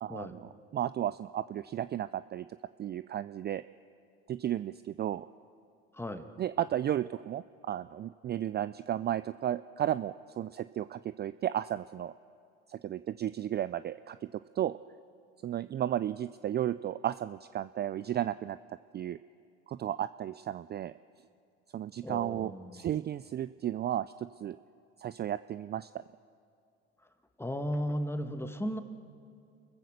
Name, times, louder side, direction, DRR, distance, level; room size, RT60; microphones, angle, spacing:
voice 1, 0.0-2.5 2.8-3.6 4.3-5.3 6.4-12.1 12.7-14.3 14.6-14.8 15.4-18.6 18.9-19.2 19.7-20.9 21.7-24.6 25.0-25.9, right 11 dB, 35° right, 15 dB, 0.4 m, -34 dB
voice 2, 5.9-6.2 22.0-22.9 27.4-28.8, equal, 10° left, 7 dB, 1.8 m, -35 dB
28.5 x 15.0 x 6.6 m, 2.4 s
hypercardioid pair, 70°, 31 cm